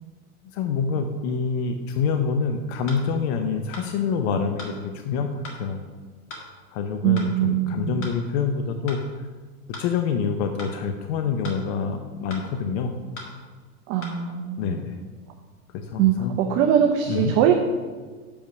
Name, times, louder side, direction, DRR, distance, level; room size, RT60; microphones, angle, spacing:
voice 1, 0.4-5.8 6.7-9.0 9.8-13.0 14.6-15.0 15.7-16.3 17.1-17.3, left 5 dB, 45° left, 6 dB, 0.7 m, -26 dB
sound 1, 2.9-3.0 3.7-3.9 4.6-4.8 5.4-5.6 6.3-6.5 7.2-7.3 8.0-8.2 8.9-9.0 9.7-9.9 10.6-10.8 11.4-11.6 12.3-12.5 13.2-13.3 14.0-14.2, left 2 dB, 30° left, 1.7 m, -38 dB
voice 2, 7.0-8.0 13.9-14.8 16.0-17.6, right 9 dB, 35° right, 3 dB, 0.6 m, -22 dB
6.7 x 5.5 x 6.0 m, 1.4 s
hypercardioid pair, 125°, 45 cm